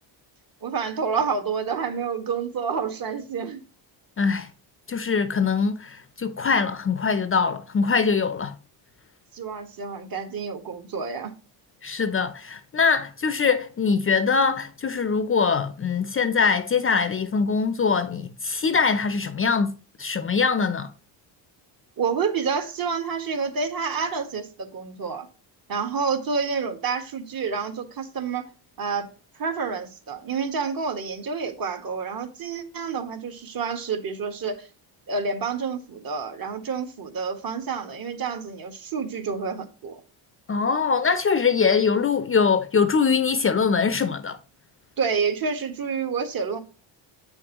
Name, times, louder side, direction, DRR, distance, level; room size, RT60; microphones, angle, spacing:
voice 1, 0.6-3.6 9.3-11.3 22.0-25.3 25.7-28.5 28.8-29.1 29.4-34.7 35.1-40.0 45.0-46.6, right 5 dB, 50° right, 1.7 m, -28 dB
voice 2, 4.2-4.5 4.9-8.5 11.8-20.9 40.5-44.4, left 5 dB, 30° left, 0.6 m, -23 dB
8.3 x 6.3 x 3.0 m
cardioid pair, 120°, 45 cm